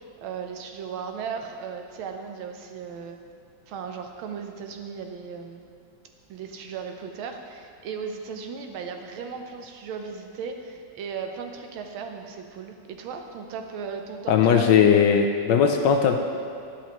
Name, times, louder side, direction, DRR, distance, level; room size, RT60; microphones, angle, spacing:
voice 1, 0.2-3.2 3.7-5.7 6.3-15.1, right 6 dB, 90° right, 5 dB, 1.5 m, -36 dB
voice 2, 14.3-16.2, left 7 dB, 75° left, 4 dB, 1.1 m, -18 dB
10.0 x 7.5 x 2.9 m, 2.4 s
omnidirectional pair, 2.2 m